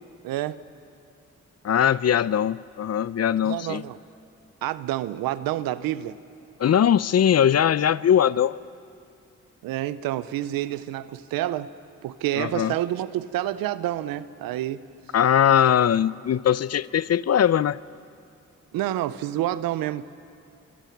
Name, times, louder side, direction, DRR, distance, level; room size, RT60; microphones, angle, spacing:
voice 1, 0.2-0.6 3.4-4.0 4.6-6.2 9.6-11.7 12.0-14.8 18.7-20.0, right 13 dB, 90° right, 16 dB, 0.7 m, -28 dB
voice 2, 1.6-3.8 6.6-8.6 12.4-12.7 15.1-17.8, left 9 dB, 45° left, 19 dB, 0.6 m, -21 dB
25.0 x 24.0 x 5.9 m, 2.4 s
supercardioid pair, 50°, 34 cm